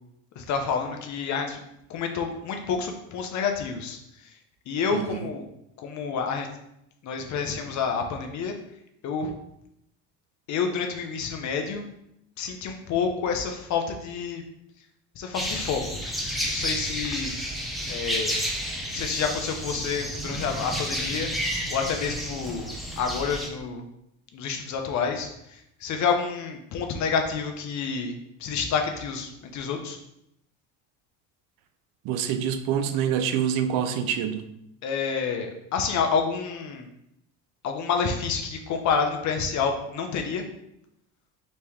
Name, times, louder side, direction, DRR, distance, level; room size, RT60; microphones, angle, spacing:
voice 1, 0.4-1.6 1.9-4.0 4.7-5.4 5.8-6.5 7.0-8.5 9.0-9.3 10.5-11.8 12.4-14.4 15.2-15.8 16.4-17.3 17.9-18.4 18.9-21.3 21.7-23.8 24.3-28.1 28.4-30.0 34.8-36.9 37.6-40.4, left 6 dB, 55° left, 4 dB, 0.8 m, -28 dB
voice 2, 4.9-5.3 32.0-34.5, right 8 dB, 80° right, 9 dB, 0.6 m, -26 dB
sound 1, 15.3-23.5, equal, ahead, 0.7 m, -31 dB
4.2 x 3.0 x 3.5 m, 0.79 s
supercardioid pair, 100°, 33 cm